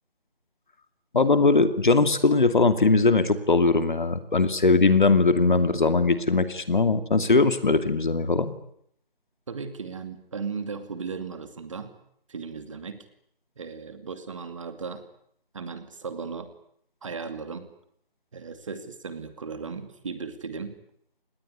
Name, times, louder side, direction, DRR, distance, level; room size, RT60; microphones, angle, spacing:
voice 1, 1.1-8.5, left 3 dB, 55° left, 10 dB, 2.6 m, -20 dB
voice 2, 9.5-11.9 12.3-13.1 13.6-15.0 15.5-16.5 17.0-17.7 18.3-20.8, right 5 dB, 35° right, 10 dB, 2.4 m, -36 dB
26.5 x 19.5 x 9.6 m, 0.69 s
figure-of-eight pair, 160°, 29 cm